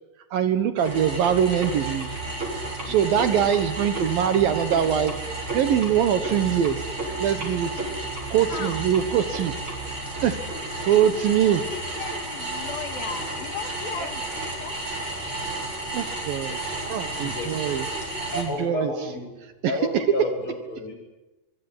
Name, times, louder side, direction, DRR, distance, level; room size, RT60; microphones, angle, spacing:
voice 1, 0.3-2.1 2.8-5.1 5.5-6.8 7.2-7.7 8.3-9.5 10.2-10.3 10.8-11.6 14.0-14.1 15.9-16.6 16.9-18.0 18.4-18.9 19.6-20.0, right 9 dB, 65° right, 11 dB, 2.8 m, -23 dB
sound 1, 0.8-18.4, right 2 dB, 25° right, 7.9 m, -32 dB
voice 2, 2.8-3.2 8.5-8.8 11.1-11.3 11.7-14.8, left 7 dB, 65° left, 7 dB, 3.2 m, -37 dB
voice 3, 17.2-17.6 18.3-19.3 19.7-20.9, left 1 dB, 30° left, 3 dB, 8.8 m, -30 dB
24.5 x 24.5 x 9.8 m, 1.1 s
omnidirectional pair, 4.8 m